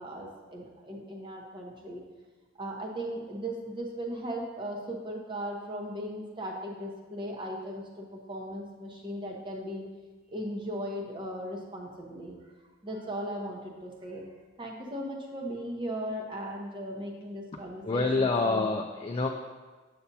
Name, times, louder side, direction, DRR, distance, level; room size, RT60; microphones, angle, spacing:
voice 1, 0.0-2.0 2.6-9.8 10.3-12.4 12.8-14.2 14.6-18.7, equal, 25° right, -1 dB, 1.0 m, -37 dB
voice 2, 17.5-19.3, left 3 dB, 25° left, 1 dB, 0.3 m, -28 dB
8.5 x 6.9 x 2.7 m, 1.3 s
head